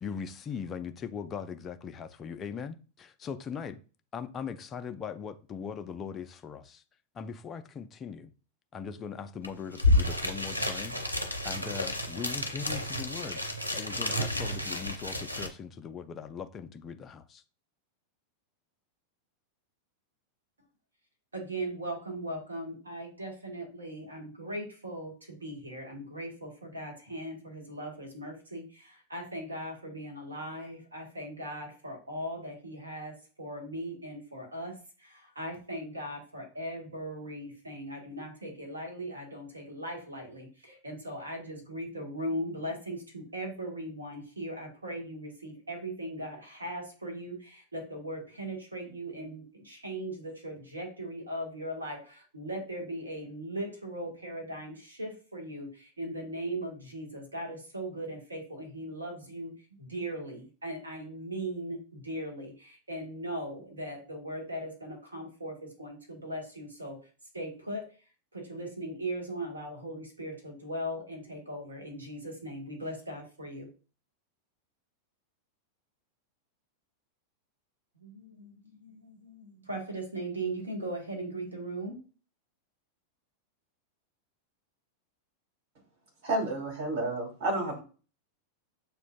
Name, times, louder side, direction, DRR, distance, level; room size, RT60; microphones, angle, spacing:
voice 1, 0.0-3.8 4.1-6.8 7.2-8.3 8.7-11.0 11.4-13.4 13.7-17.4, left 6 dB, 25° left, 0.4 m, -40 dB
sound 1, 9.4-9.5 9.7-15.5, left 2 dB, 90° left, 0.5 m, -30 dB
voice 2, 21.3-67.0 67.3-68.0 68.3-73.7 77.9-82.0, right 1 dB, 75° right, 1.3 m, -39 dB
voice 3, 86.2-87.8, right 2 dB, 55° right, 2.0 m, -30 dB
7.0 x 2.5 x 2.2 m
figure-of-eight pair, 90°, 0 cm